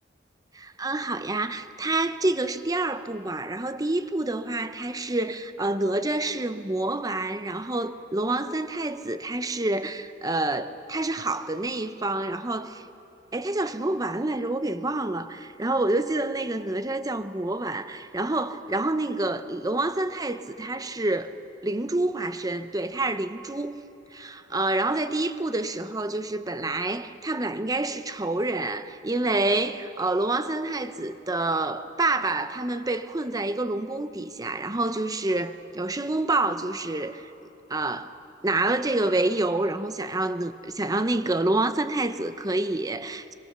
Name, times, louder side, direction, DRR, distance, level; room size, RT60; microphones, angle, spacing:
voice 1, 0.5-12.8 13.3-21.3 21.6-23.8 24.1-37.3 37.7-38.1 38.4-43.3, right 2 dB, 20° right, 0.8 m, -27 dB
24.5 x 23.5 x 6.7 m
head